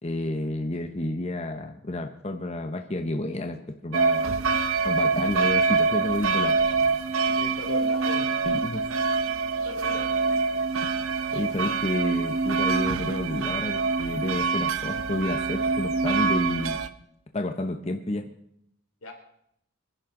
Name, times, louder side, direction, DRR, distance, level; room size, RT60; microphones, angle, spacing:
voice 1, 0.0-4.3 4.8-6.6 8.4-8.8 11.3-16.8 17.3-18.3, left 1 dB, 30° left, 5 dB, 0.9 m, -30 dB
sound 1, 3.9-16.9, right 4 dB, 75° right, 0.8 m, -25 dB
voice 2, 7.2-8.3 9.6-10.1 19.0-19.1, left 3 dB, 90° left, 3 dB, 3.1 m, -38 dB
25.0 x 10.5 x 3.8 m, 0.74 s
head